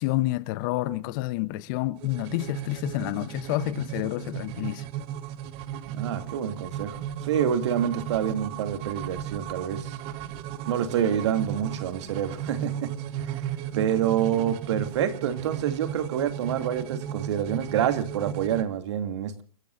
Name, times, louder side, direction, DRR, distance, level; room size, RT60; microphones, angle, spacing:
voice 1, 0.0-4.9, left 18 dB, 35° left, 0.9 m, -29 dB
sound 1, 2.0-18.6, right 10 dB, 30° right, 1.6 m, -35 dB
voice 2, 5.9-10.0 10.7-12.9 13.2-19.4, right 9 dB, 50° right, 2.8 m, -27 dB
29.5 x 16.0 x 2.7 m
hypercardioid pair, 130°, 19 cm